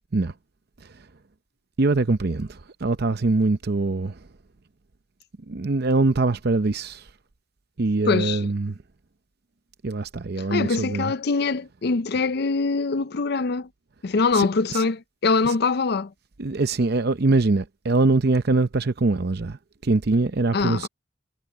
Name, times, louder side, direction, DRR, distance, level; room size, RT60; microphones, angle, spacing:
voice 1, 1.8-4.2 5.5-7.0 7.8-8.7 9.8-11.1 14.3-14.9 15.4-15.6 16.4-19.6 19.8-20.9, right 3 dB, 55° right, 0.7 m, -23 dB
voice 2, 8.1-8.5 10.4-13.7 14.0-16.1 20.5-20.9, left 4 dB, 60° left, 0.6 m, -23 dB
head